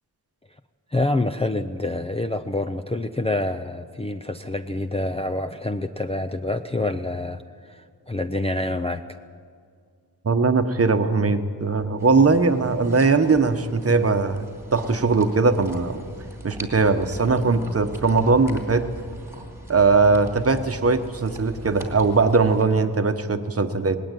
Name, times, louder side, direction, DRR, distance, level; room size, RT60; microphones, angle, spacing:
voice 1, 0.9-9.0, left 2 dB, 15° left, 6 dB, 0.5 m, -27 dB
voice 2, 10.2-16.0 16.4-18.9 19.7-24.0, right 4 dB, 35° right, 8 dB, 1.0 m, -20 dB
sound 1, 12.0-22.6, right 1 dB, 5° right, 2.5 m, -41 dB
19.5 x 17.5 x 9.1 m, 2.1 s
wide cardioid pair, 170°, 40 cm